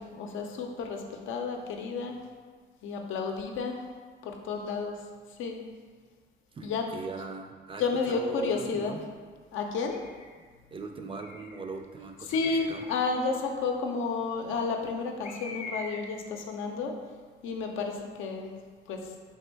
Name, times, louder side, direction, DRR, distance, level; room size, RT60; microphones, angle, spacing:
voice 1, 0.0-2.2 2.8-3.8 4.2-5.0 5.4-5.6 6.6-6.8 7.8-8.9 9.5-10.0 12.3-17.0 17.4-18.5 18.9-19.1, left 4 dB, 85° left, 2 dB, 0.5 m, -31 dB
voice 2, 6.5-9.1 10.7-12.8, right 4 dB, 25° right, 4 dB, 0.4 m, -40 dB
Bird, 9.9-10.3 11.1-11.7 12.3-12.9 15.2-16.2, left 3 dB, 35° left, 0.5 m, -41 dB
3.5 x 2.6 x 4.4 m, 1.5 s
cardioid pair, 90°, 20 cm